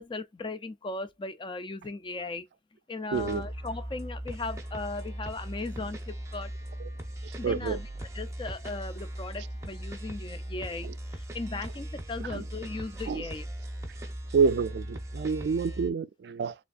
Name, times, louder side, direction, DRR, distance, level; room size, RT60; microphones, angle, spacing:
voice 1, 0.0-2.4 2.9-6.5 7.4-10.9 11.3-13.5, left 3 dB, 25° left, 0.4 m, -37 dB
sound 1, 3.1-15.9, right 1 dB, 15° right, 0.8 m, -39 dB
voice 2, 3.1-3.4 7.4-7.8 10.8-10.9 12.3-12.4 13.1-13.2 14.3-16.5, right 5 dB, 65° right, 0.3 m, -27 dB
3.4 x 3.3 x 2.4 m
head